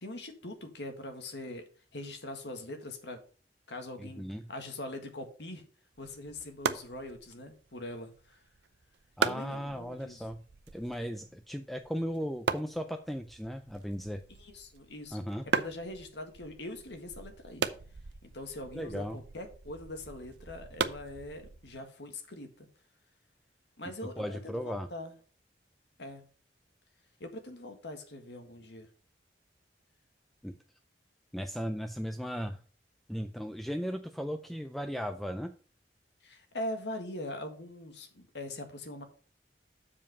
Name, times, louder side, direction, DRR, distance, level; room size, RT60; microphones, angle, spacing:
voice 1, 0.0-1.6 1.9-3.2 3.7-5.7 6.0-8.4 9.2-10.2 14.4-15.2 15.5-17.7 18.2-22.7 23.8-25.1 26.0-26.3 27.2-28.9 36.2-39.0, left 1 dB, 80° left, 6 dB, 1.6 m, -42 dB
voice 2, 4.0-4.4 9.2-10.4 10.7-14.2 15.1-15.4 18.7-19.2 24.2-24.9 30.4-30.6 31.3-32.6 33.1-35.5, equal, ahead, 7 dB, 0.4 m, -36 dB
sound 1, 5.9-21.8, right 5 dB, 75° right, 0.6 m, -39 dB
7.2 x 5.0 x 5.4 m, 0.40 s
head